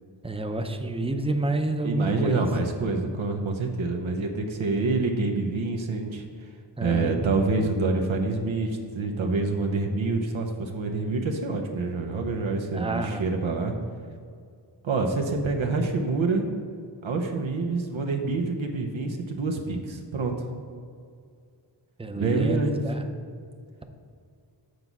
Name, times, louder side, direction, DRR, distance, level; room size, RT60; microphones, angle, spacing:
voice 1, 0.2-2.4 6.8-7.3 12.7-13.3 22.0-23.0, right 2 dB, 15° right, 6 dB, 0.6 m, -29 dB
voice 2, 1.8-6.5 6.8-13.7 14.8-16.4 17.0-20.5 22.2-22.8, right 3 dB, 90° right, 2 dB, 0.9 m, -27 dB
7.9 x 4.0 x 6.0 m, 2.2 s
wide cardioid pair, 80°, 46 cm